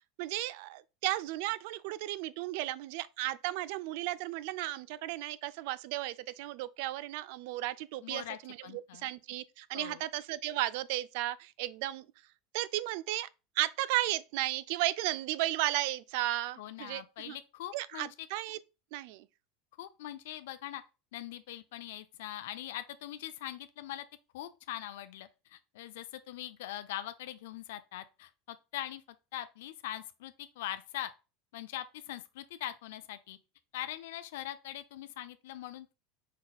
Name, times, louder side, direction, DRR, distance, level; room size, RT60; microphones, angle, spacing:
voice 1, 0.2-12.1 12.5-13.3 13.6-17.4 17.7-18.6 18.9-19.3, right 16 dB, 65° right, 0.3 m, -34 dB
voice 2, 8.0-9.1 9.7-10.0 16.6-18.1 19.8-20.8 21.1-24.1 24.3-29.0 29.3-31.1 31.5-33.4 33.7-35.9, left 13 dB, 80° left, 0.4 m, -42 dB
5.3 x 4.0 x 2.3 m
supercardioid pair, 135°, 0 cm